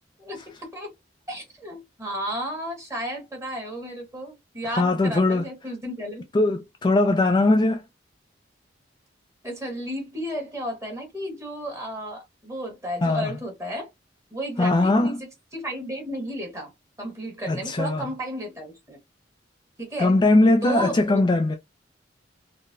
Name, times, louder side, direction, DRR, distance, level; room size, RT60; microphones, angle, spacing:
voice 1, 1.3-6.2 9.4-13.9 14.3-16.7 17.0-19.0 19.8-20.2 20.6-21.2, equal, 15° right, 1.4 m, -33 dB
voice 2, 4.6-5.5 6.3-7.8 13.0-13.3 14.6-15.2 17.5-18.0 20.0-21.6, left 2 dB, 25° left, 0.3 m, -20 dB
3.8 x 2.1 x 2.6 m
head